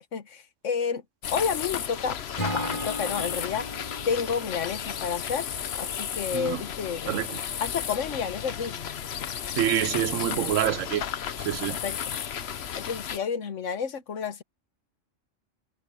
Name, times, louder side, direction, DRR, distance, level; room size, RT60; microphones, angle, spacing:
voice 1, 0.1-1.0 1.3-2.2 2.5-3.7 4.1-5.5 5.7-7.2 7.6-8.8 11.7-12.0 12.7-14.4, left 6 dB, 80° left, 1.4 m, -30 dB
sound 1, 1.2-13.2, left 8 dB, 60° left, 1.0 m, -33 dB
Acoustic guitar / Strum, 2.3-5.5, equal, 25° left, 5.1 m, -36 dB
voice 2, 7.1-7.4 9.6-11.0 11.4-11.8, right 12 dB, 85° right, 1.0 m, -26 dB
omnidirectional pair, 1.3 m